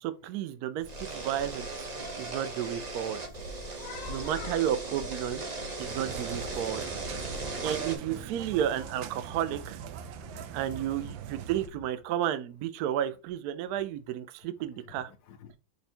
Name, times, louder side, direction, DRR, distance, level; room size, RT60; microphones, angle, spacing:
voice 1, 0.0-1.7 2.0-3.2 4.1-5.4 5.8-6.8 7.6-9.8 10.5-15.1, right 10 dB, 75° right, 0.9 m, -32 dB
sound 1, 0.8-8.0, right 2 dB, 55° right, 0.4 m, -37 dB
voice 2, 3.8-4.6 9.4-9.6 10.2-11.1 14.9-15.0 15.3-15.6, left 8 dB, 70° left, 1.0 m, -47 dB
sound 2, 5.8-11.7, right 8 dB, 90° right, 1.3 m, -41 dB
5.3 x 2.2 x 4.2 m
omnidirectional pair, 2.0 m